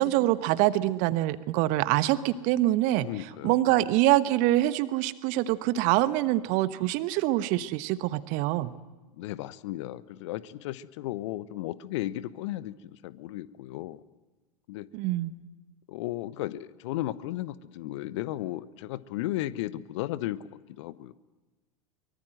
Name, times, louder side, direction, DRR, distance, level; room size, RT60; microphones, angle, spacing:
voice 1, 0.0-3.1 3.4-8.7 14.9-15.3, right 15 dB, 45° right, 15 dB, 1.2 m, -25 dB
voice 2, 3.0-3.6 9.1-14.0 14.7-14.9 15.9-20.4 20.7-21.1, left 15 dB, 55° left, 16 dB, 1.1 m, -35 dB
24.0 x 23.0 x 7.8 m, 1.2 s
figure-of-eight pair, 85°, 18 cm